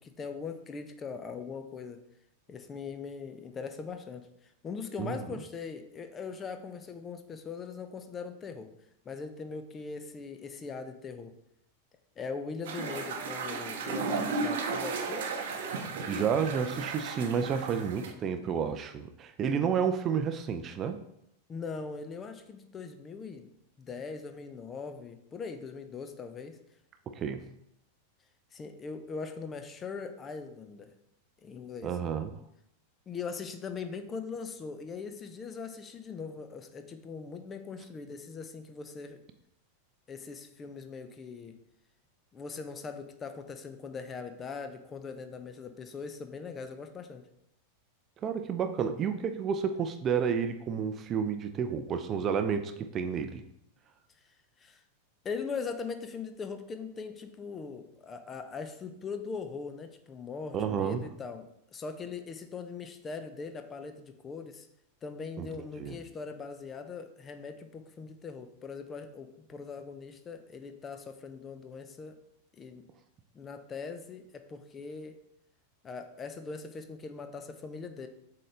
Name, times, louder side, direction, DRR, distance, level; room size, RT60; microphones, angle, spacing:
voice 1, 0.0-2.0 2.5-8.7 9.1-11.4 12.2-15.3 21.5-23.5 23.8-26.6 28.5-30.9 31.4-32.0 33.1-39.2 40.1-41.6 42.3-47.3 54.6-54.8 55.2-64.7 65.0-72.2 72.5-72.8 73.3-75.2 75.8-78.1, left 5 dB, 20° left, 8 dB, 0.6 m, -41 dB
sound 1, 12.6-18.1, right 4 dB, 55° right, 0.8 m, -34 dB
voice 2, 16.1-21.0 27.1-27.5 31.8-32.3 48.2-53.4 60.5-61.0 65.4-65.5 65.8-66.0, right 7 dB, 30° right, 8 dB, 0.5 m, -30 dB
7.5 x 3.8 x 3.3 m, 0.77 s
figure-of-eight pair, 90°, 0 cm